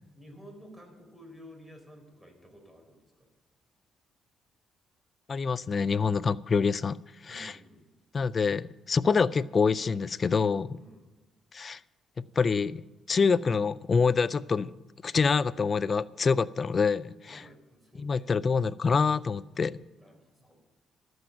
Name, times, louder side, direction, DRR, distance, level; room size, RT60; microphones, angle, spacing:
voice 1, 0.1-3.3 7.3-7.9 10.8-11.1 17.3-18.3 20.0-20.7, equal, 10° right, 2 dB, 4.1 m, -52 dB
voice 2, 5.3-7.0 7.2-7.5 8.1-10.8 11.5-11.8 12.2-12.8 13.1-14.7 15.0-17.4 18.0-19.8, left 5 dB, 40° left, 18 dB, 0.4 m, -26 dB
13.0 x 7.9 x 9.0 m, 1.1 s
cardioid pair, 90°, 0 cm